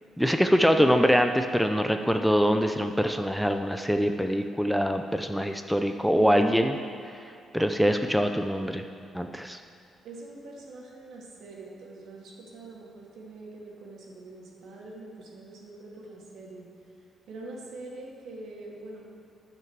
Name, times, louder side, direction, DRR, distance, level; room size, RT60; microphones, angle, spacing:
voice 1, 0.2-6.7 7.5-8.8 9.1-9.6, equal, ahead, 6 dB, 0.6 m, -24 dB
voice 2, 6.1-7.0 10.0-16.7 17.3-19.1, right 2 dB, 80° right, -3 dB, 2.5 m, -43 dB
10.5 x 5.9 x 7.4 m, 2.5 s
cardioid pair, 90°, 0 cm